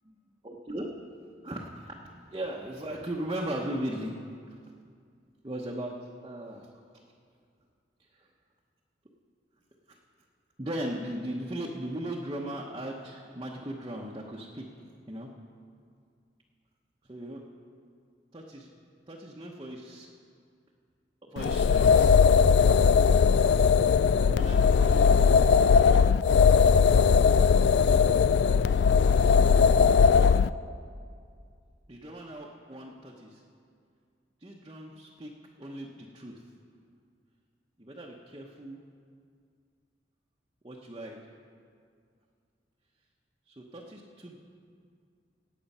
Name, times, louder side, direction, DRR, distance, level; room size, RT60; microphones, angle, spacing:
voice 1, 0.4-0.9 1.4-2.0 2.3-4.2 5.4-6.0 6.2-6.8 8.1-8.3 9.9-10.0 10.6-14.7 15.1-15.3 17.1-17.4 18.3-18.7 19.1-20.1 21.2-22.2 24.3-25.8 27.8-28.1 29.7-30.2 31.9-33.4 34.4-35.3 35.6-36.4 37.8-38.8 40.6-41.2 43.5-44.4, right 1 dB, 25° right, -2 dB, 0.9 m, -38 dB
sound 1, 21.4-30.5, left 6 dB, 75° left, 0.3 m, -20 dB
17.5 x 8.4 x 5.5 m, 2.3 s
head